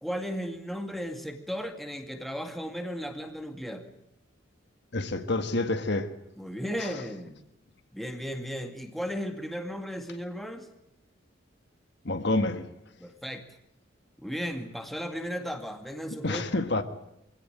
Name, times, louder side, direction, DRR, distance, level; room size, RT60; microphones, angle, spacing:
voice 1, 0.0-3.9 6.4-7.4 7.9-10.7 13.0-13.5 14.2-16.4, equal, ahead, 2.1 m, -35 dB
voice 2, 4.9-6.1 6.8-6.9 12.0-12.7 16.2-16.8, left 2 dB, 55° left, 1.7 m, -28 dB
24.0 x 17.0 x 9.0 m
head